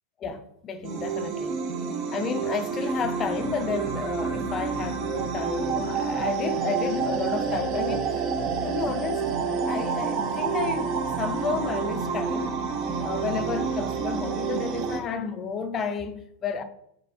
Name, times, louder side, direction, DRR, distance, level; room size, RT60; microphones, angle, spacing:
voice 1, 0.2-1.7 2.1-8.3 8.6-9.3 9.7-12.6 13.0-16.6, left 6 dB, 25° left, 0.5 m, -31 dB
sound 1, 0.8-15.0, right 5 dB, 40° right, 0.7 m, -28 dB
4.2 x 3.2 x 3.8 m
figure-of-eight pair, 90°, 0 cm